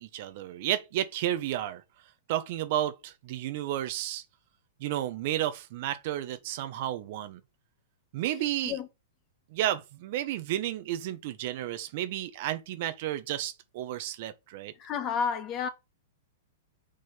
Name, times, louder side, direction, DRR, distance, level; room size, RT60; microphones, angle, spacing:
voice 1, 0.0-1.8 2.3-4.2 4.8-7.4 8.1-8.8 9.5-14.7, right 12 dB, 55° right, 1.1 m, -32 dB
voice 2, 14.8-15.7, left 6 dB, 30° left, 1.6 m, -30 dB
6.7 x 4.2 x 5.1 m
hypercardioid pair, 135°, 0 cm